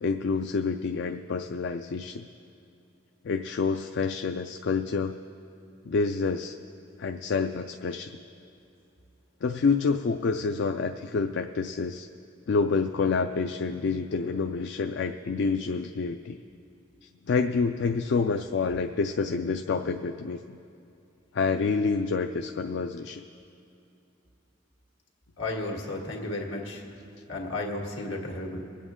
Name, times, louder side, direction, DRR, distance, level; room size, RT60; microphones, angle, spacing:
voice 1, 0.0-2.2 3.2-5.2 5.9-6.6 7.0-8.1 9.4-12.1 12.5-16.4 17.3-20.6 21.3-23.2, left 4 dB, 65° left, 6 dB, 0.4 m, -28 dB
voice 2, 25.4-26.8 27.3-28.6, left 2 dB, 80° left, 0 dB, 1.9 m, -33 dB
24.5 x 8.4 x 3.7 m, 2.7 s
head